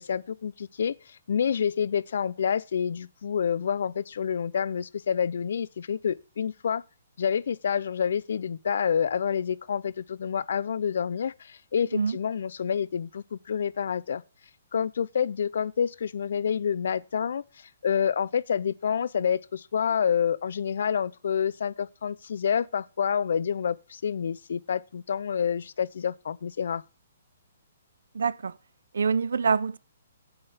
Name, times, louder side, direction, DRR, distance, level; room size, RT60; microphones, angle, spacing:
voice 1, 0.0-6.8 7.2-14.2 14.7-26.8, left 7 dB, 60° left, 0.5 m, -28 dB
voice 2, 28.1-28.6 28.9-29.8, right 5 dB, 85° right, 0.5 m, -25 dB
8.8 x 7.7 x 4.9 m
hypercardioid pair, 175°, 0 cm